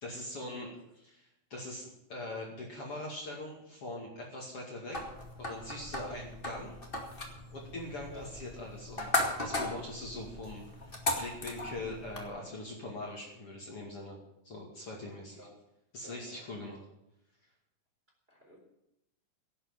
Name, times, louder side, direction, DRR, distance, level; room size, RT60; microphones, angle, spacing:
voice 1, 0.0-5.1 5.4-6.7 7.5-9.1 9.4-14.2 14.4-15.4 15.9-16.8, left 1 dB, 45° left, -2 dB, 2.9 m, -42 dB
sound 1, 4.9-12.3, left 2 dB, 20° left, 1.7 m, -37 dB
voice 2, 15.0-15.5 16.0-16.6 18.3-18.6, equal, 15° right, -1 dB, 3.8 m, -51 dB
17.0 x 8.2 x 7.4 m, 0.83 s
omnidirectional pair, 4.0 m